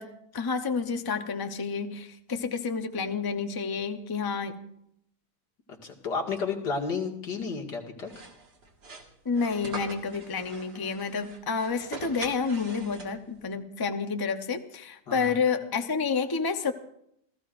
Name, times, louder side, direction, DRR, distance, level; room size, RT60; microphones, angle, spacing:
voice 1, 0.0-4.6 9.2-16.7, left 5 dB, 20° left, 6 dB, 0.6 m, -30 dB
voice 2, 5.8-8.1 15.1-15.3, left 5 dB, 85° left, 0 dB, 2.7 m, -32 dB
sound 1, 8.1-13.4, right 3 dB, 80° right, 2.6 m, -43 dB
28.5 x 15.0 x 2.6 m, 0.73 s
omnidirectional pair, 1.8 m